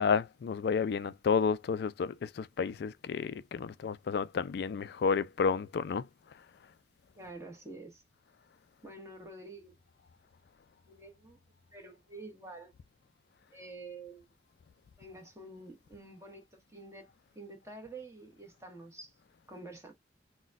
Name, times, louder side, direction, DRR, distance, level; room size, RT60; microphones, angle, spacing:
voice 1, 0.0-6.0, left 5 dB, 60° left, 0.3 m, -31 dB
voice 2, 7.2-8.0 8.8-9.7 10.9-11.4 11.7-12.7 13.5-14.2 15.0-17.1 17.3-19.1 19.5-19.9, right 2 dB, 15° right, 1.0 m, -48 dB
3.9 x 2.2 x 2.4 m
head